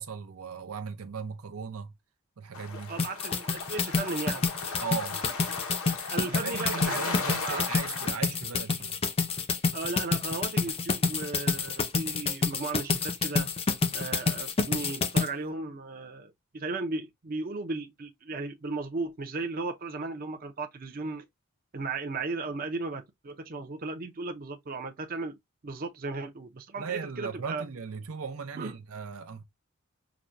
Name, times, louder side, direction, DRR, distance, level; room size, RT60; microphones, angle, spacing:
voice 1, 0.0-1.9 2.4-2.9 4.8-5.2 6.2-9.0 26.8-29.4, right 5 dB, 85° right, 0.7 m, -37 dB
sound 1, 2.5-8.1, left 4 dB, 80° left, 0.8 m, -37 dB
voice 2, 2.9-4.5 6.1-7.7 9.7-13.5 13.9-21.3 21.7-25.4 25.6-27.6 28.6-28.7, right 3 dB, 40° right, 0.6 m, -36 dB
sound 2, 3.0-15.3, left 4 dB, 25° left, 0.5 m, -28 dB
5.9 x 2.1 x 2.5 m
head